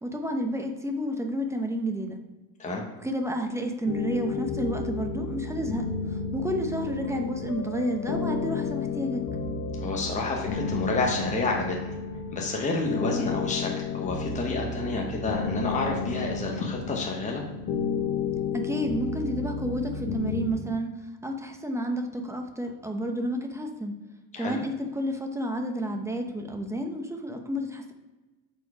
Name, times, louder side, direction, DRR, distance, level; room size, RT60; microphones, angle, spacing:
voice 1, 0.0-2.2 3.0-9.2 18.5-20.9 21.2-24.0 24.4-27.9, equal, 5° right, 3 dB, 0.9 m, -30 dB
sound 1, 3.9-20.5, left 5 dB, 60° left, 1.4 m, -32 dB
voice 2, 9.8-11.9 12.3-17.4 24.3-24.6, left 3 dB, 20° left, 0 dB, 1.1 m, -29 dB
7.8 x 4.7 x 4.8 m, 1.2 s
cardioid pair, 120°, 39 cm